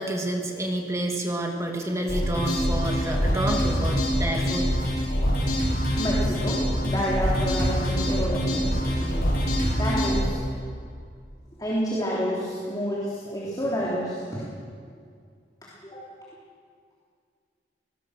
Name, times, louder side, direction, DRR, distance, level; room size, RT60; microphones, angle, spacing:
voice 1, 0.0-4.7, right 1 dB, 15° right, 1 dB, 2.5 m, -29 dB
sound 1, 2.1-10.2, equal, 55° left, 6.3 m, -25 dB
voice 2, 6.0-10.4 11.6-14.5 15.6-16.1, equal, 20° left, -6 dB, 3.4 m, -29 dB
22.0 x 18.5 x 6.5 m, 2.1 s
head